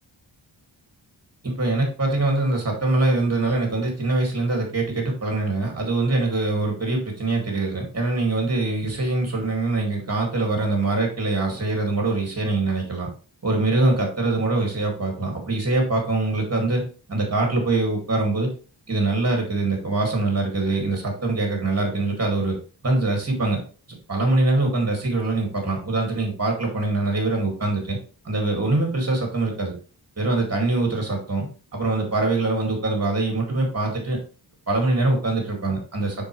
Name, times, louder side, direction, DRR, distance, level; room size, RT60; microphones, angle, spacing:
voice 1, 1.4-13.1 13.4-18.5 18.9-22.6 22.8-23.6 23.9-28.0 28.2-29.7 30.2-31.5 31.7-34.2 34.7-36.3, right 2 dB, 30° right, 1 dB, 2.3 m, -23 dB
9.5 x 4.5 x 3.2 m, 0.37 s
wide cardioid pair, 170°, 46 cm